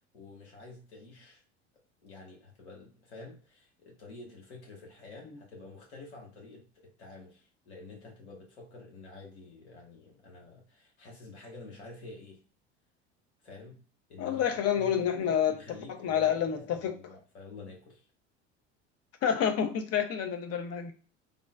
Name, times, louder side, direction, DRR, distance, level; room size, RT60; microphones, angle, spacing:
voice 1, 0.1-1.4 2.0-12.4 13.4-13.8 14.1-18.0, left 3 dB, 85° left, 1.4 m, -49 dB
voice 2, 14.2-15.5 16.0-16.9 19.2-20.9, left 8 dB, 45° left, 0.7 m, -28 dB
3.7 x 2.1 x 2.4 m
hypercardioid pair, 80°, 33 cm